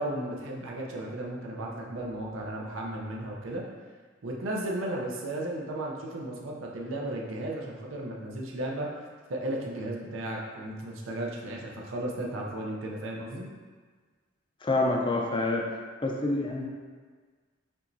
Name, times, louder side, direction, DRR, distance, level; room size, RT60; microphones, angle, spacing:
voice 1, 0.0-3.6 4.2-8.9 9.3-13.5, right 1 dB, 75° right, -2 dB, 0.6 m, -34 dB
voice 2, 14.6-15.7 16.0-16.7, left 2 dB, 25° left, 0 dB, 0.4 m, -27 dB
5.4 x 3.0 x 2.6 m, 1.5 s
head